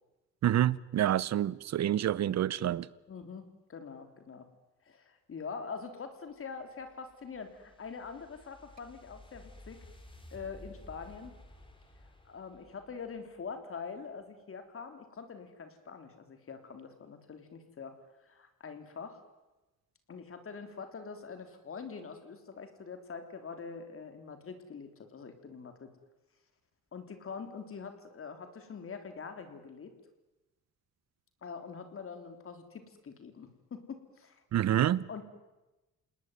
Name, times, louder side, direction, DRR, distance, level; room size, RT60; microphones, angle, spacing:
voice 1, 0.4-2.9 34.5-35.0, right 11 dB, 60° right, 0.9 m, -27 dB
voice 2, 3.1-4.5 4.9-9.8 10.3-11.4 12.3-19.2 20.1-25.9 26.9-29.9 31.4-34.4 35.1-35.2, left 5 dB, 45° left, 3.6 m, -44 dB
sound 1, 6.3-13.6, left 1 dB, 15° left, 4.5 m, -55 dB
27.5 x 19.5 x 9.6 m
cardioid pair, 90°, 30 cm